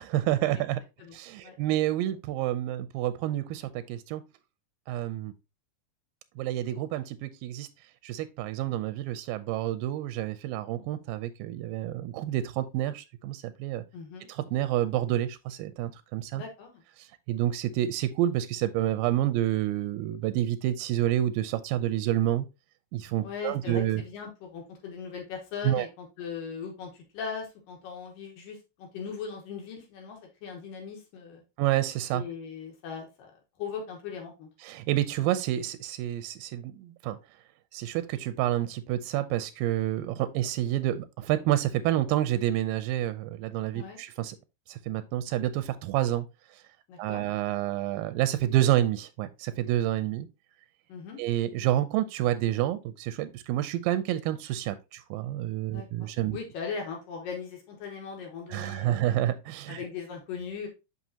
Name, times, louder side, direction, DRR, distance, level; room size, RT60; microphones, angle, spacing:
voice 1, 0.0-0.8 1.1-4.2 4.9-5.3 6.4-7.7 8.0-13.8 14.3-16.4 17.3-22.5 22.9-24.0 25.6-25.9 31.6-32.2 34.6-37.2 37.7-44.4 44.7-46.3 47.0-50.3 51.2-56.4 58.5-59.8, right 13 dB, 90° right, 2.3 m, -29 dB
voice 2, 13.9-14.3 16.4-16.8 23.2-31.4 32.1-33.3 33.6-34.5 43.7-44.0 46.9-47.3 50.9-51.2 55.7-59.1 59.7-60.7, left 6 dB, 75° left, 2.9 m, -39 dB
6.1 x 5.8 x 2.7 m
omnidirectional pair, 4.0 m